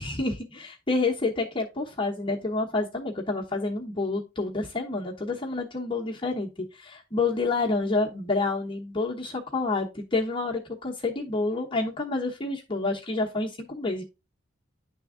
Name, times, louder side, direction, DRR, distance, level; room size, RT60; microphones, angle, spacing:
voice 1, 0.0-6.5 6.7-14.0, left 3 dB, 25° left, -2 dB, 1.1 m, -28 dB
10.5 x 3.5 x 3.7 m, 0.26 s
head